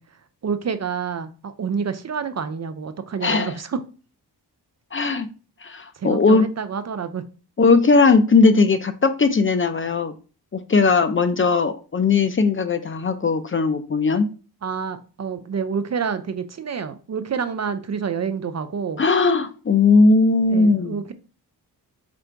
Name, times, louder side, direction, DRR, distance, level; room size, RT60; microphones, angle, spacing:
voice 1, 0.0-3.8 6.0-7.2 14.6-19.0 20.5-21.1, right 6 dB, 40° right, 11 dB, 0.5 m, -28 dB
voice 2, 3.2-3.5 4.9-5.3 5.6-6.4 7.6-10.1 10.5-14.3 19.0-21.0, left 4 dB, 30° left, 10 dB, 0.5 m, -18 dB
4.4 x 2.5 x 4.4 m, 0.36 s
cardioid pair, 55°, 43 cm